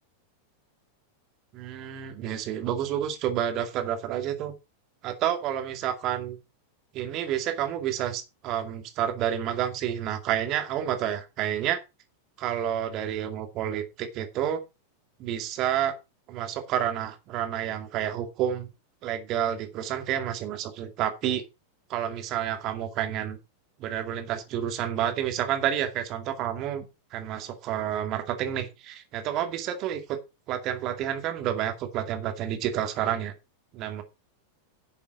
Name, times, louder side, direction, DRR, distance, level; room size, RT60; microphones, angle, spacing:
voice 1, 1.5-4.5 5.0-6.4 6.9-11.8 12.4-14.6 15.2-15.9 16.3-18.7 19.0-21.4 21.9-23.4 23.8-26.8 27.1-30.2 30.5-33.3 33.7-34.0, right 10 dB, 35° right, 2.3 m, -29 dB
11.5 x 6.9 x 4.8 m
figure-of-eight pair, 90°, 0 cm